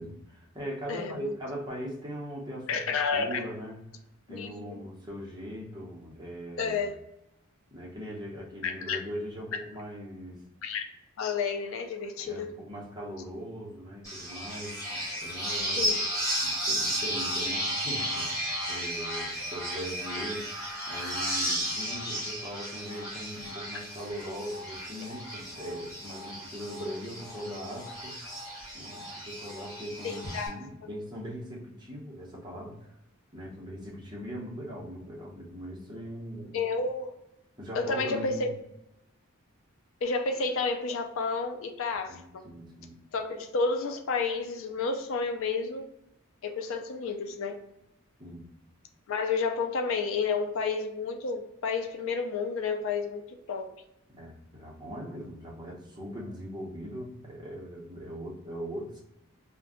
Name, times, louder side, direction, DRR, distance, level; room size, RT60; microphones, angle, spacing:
voice 1, 0.0-2.8 3.1-3.8 4.3-6.8 7.7-10.4 12.2-15.9 16.4-20.5 20.9-28.2 28.7-32.9 33.3-36.5 37.6-38.5 42.1-43.0 48.2-48.5 54.1-59.0, equal, 20° right, -3 dB, 0.7 m, -40 dB
voice 2, 0.9-1.4 2.7-3.4 4.3-4.9 6.6-7.0 8.6-9.0 10.6-10.8 11.2-12.6 15.6-16.1 30.0-30.7 36.5-37.1 37.7-38.5 40.0-42.4 43.1-45.9 46.4-47.6 49.1-53.7, left 4 dB, 65° left, 5 dB, 0.4 m, -31 dB
sound 1, 14.0-30.5, equal, 15° left, 1.0 m, -34 dB
2.5 x 2.2 x 3.5 m, 0.84 s
head